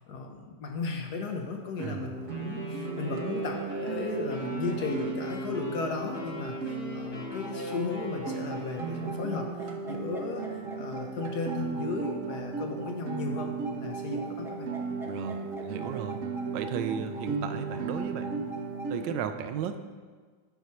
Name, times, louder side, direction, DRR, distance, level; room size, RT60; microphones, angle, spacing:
voice 1, 0.0-14.7, left 3 dB, 65° left, 3 dB, 1.2 m, -35 dB
Guitar, 1.8-19.2, right 4 dB, 60° right, 0.9 m, -36 dB
voice 2, 1.8-2.1 15.0-16.2 16.5-18.5 18.9-19.8, right 8 dB, 75° right, 9 dB, 1.2 m, -35 dB
Wind instrument woodwind instrument, 2.3-9.3, left 1 dB, 20° left, 0.7 m, -42 dB
sound 1, 7.3-18.9, right 1 dB, 5° right, 0.4 m, -44 dB
9.6 x 4.5 x 5.6 m, 1.5 s
omnidirectional pair, 2.1 m